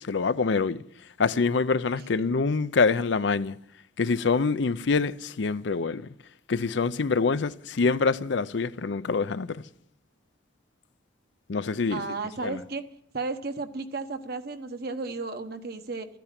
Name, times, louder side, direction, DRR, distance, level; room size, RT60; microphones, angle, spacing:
voice 1, 0.1-0.8 1.2-3.6 4.0-6.1 6.5-9.6 11.5-12.0 12.4-12.6, left 4 dB, 65° left, 0.5 m, -25 dB
voice 2, 11.9-12.8 13.1-16.1, right 3 dB, 55° right, 1.1 m, -33 dB
13.5 x 9.1 x 9.9 m
head